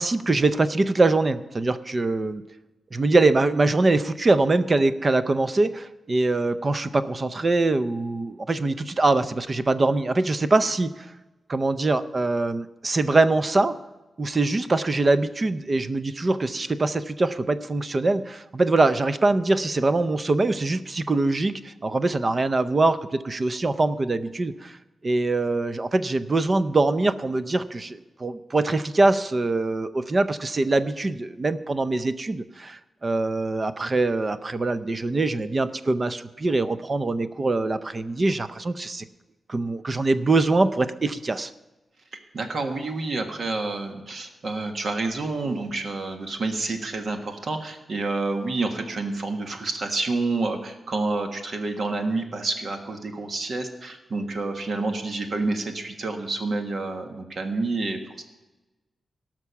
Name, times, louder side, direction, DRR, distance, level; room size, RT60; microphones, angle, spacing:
voice 1, 0.0-2.4 2.9-11.1 11.5-13.8 14.2-24.8 25.0-39.0 39.5-41.5, right 2 dB, 30° right, 13 dB, 0.6 m, -23 dB
voice 2, 42.3-58.2, right 3 dB, 55° right, 5 dB, 1.6 m, -28 dB
17.5 x 6.0 x 7.0 m, 1.1 s
wide cardioid pair, 140°, 0 cm